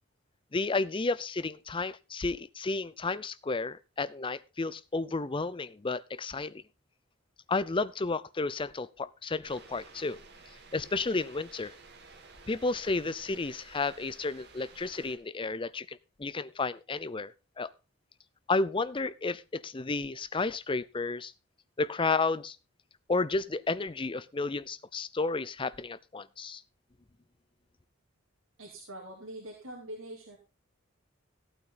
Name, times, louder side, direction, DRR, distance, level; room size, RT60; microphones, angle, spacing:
voice 1, 0.5-6.5 7.5-10.2 10.7-11.7 12.5-17.7 18.5-21.3 21.8-22.6 23.1-26.6, left 3 dB, 25° left, 17 dB, 0.5 m, -32 dB
sound 1, 9.4-15.2, right 4 dB, 55° right, 2.3 m, -53 dB
voice 2, 28.6-30.4, right 1 dB, 75° right, -1 dB, 2.8 m, -44 dB
14.5 x 8.9 x 3.9 m, 0.28 s
head